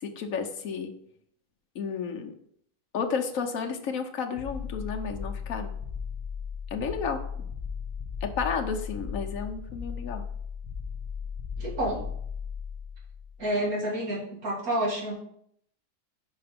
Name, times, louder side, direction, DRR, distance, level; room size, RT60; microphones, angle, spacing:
voice 1, 0.0-0.9 1.7-2.3 2.9-5.7 6.7-7.2 8.2-10.2, left 5 dB, 70° left, 4 dB, 1.2 m, -32 dB
sound 1, 4.3-13.4, left 6 dB, 15° right, 2.2 m, -36 dB
voice 2, 11.6-12.0 13.4-15.1, right 1 dB, 75° right, -3 dB, 2.4 m, -29 dB
5.7 x 5.1 x 5.1 m, 0.68 s
omnidirectional pair, 1.5 m